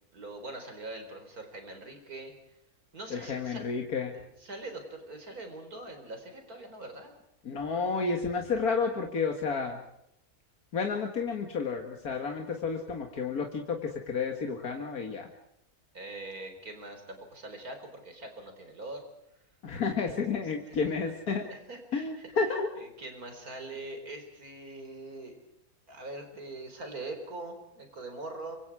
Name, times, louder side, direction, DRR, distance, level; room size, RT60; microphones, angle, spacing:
voice 1, 0.1-2.3 2.9-3.6 4.1-7.1 15.9-19.0 20.0-20.4 20.7-21.1 21.4-22.3 22.7-25.3 25.9-28.6, right 2 dB, 85° right, 6 dB, 4.7 m, -43 dB
voice 2, 3.1-4.1 7.5-9.8 10.7-13.8 14.1-15.3 19.6-21.5 21.9-22.7, left 5 dB, 85° left, 3 dB, 2.3 m, -31 dB
26.5 x 24.5 x 4.8 m, 0.81 s
omnidirectional pair, 1.5 m